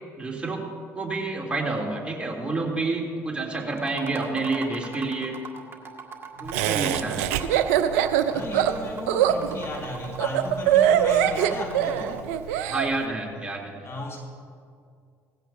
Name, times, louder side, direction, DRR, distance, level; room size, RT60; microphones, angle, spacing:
voice 1, 0.2-0.6 0.9-5.4 6.4-7.3 12.7-13.9, right 3 dB, 15° right, 3.0 m, -29 dB
sound 1, 3.8-12.4, right 5 dB, 30° right, 2.0 m, -42 dB
voice 2, 6.3-6.7 8.3-12.3 13.8-14.2, left 2 dB, 35° left, 2.0 m, -35 dB
Laughter, 6.5-12.9, right 10 dB, 75° right, 0.6 m, -22 dB
18.0 x 15.5 x 2.7 m
hypercardioid pair, 55°, 8 cm